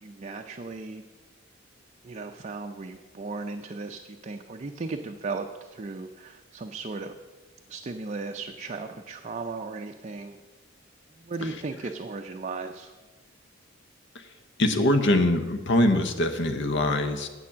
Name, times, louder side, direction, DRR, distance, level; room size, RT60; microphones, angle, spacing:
voice 1, 0.0-1.0 2.0-7.2 7.7-10.4 11.1-12.9, right 3 dB, 35° right, 4 dB, 0.5 m, -36 dB
voice 2, 14.6-17.3, left 1 dB, 65° left, 7 dB, 0.9 m, -23 dB
8.4 x 7.0 x 7.3 m, 1.3 s
head